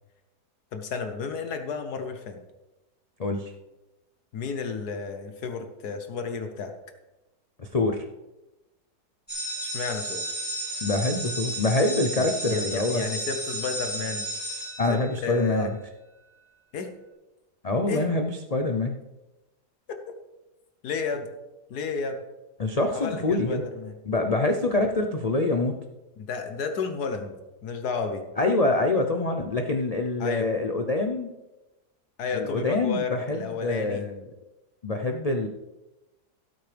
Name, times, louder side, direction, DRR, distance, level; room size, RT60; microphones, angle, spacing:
voice 1, 0.7-2.4 4.3-6.7 9.6-10.2 12.2-14.3 14.9-15.7 16.7-16.9 17.9-18.1 19.9-20.0 20.8-21.3 21.7-22.2 22.9-23.9 26.2-28.2 30.2-30.5 32.2-34.0, left 5 dB, 70° left, 6 dB, 1.5 m, -32 dB
voice 2, 3.2-3.5 7.6-8.0 10.8-13.0 14.8-15.7 17.6-19.0 22.6-23.6 24.1-25.8 28.4-31.3 32.3-34.1 34.8-35.5, left 2 dB, 55° left, 4 dB, 0.4 m, -25 dB
sound 1, 9.3-15.4, right 1 dB, 5° left, 3.8 m, -33 dB
17.0 x 8.0 x 3.4 m, 1.0 s
omnidirectional pair, 1.8 m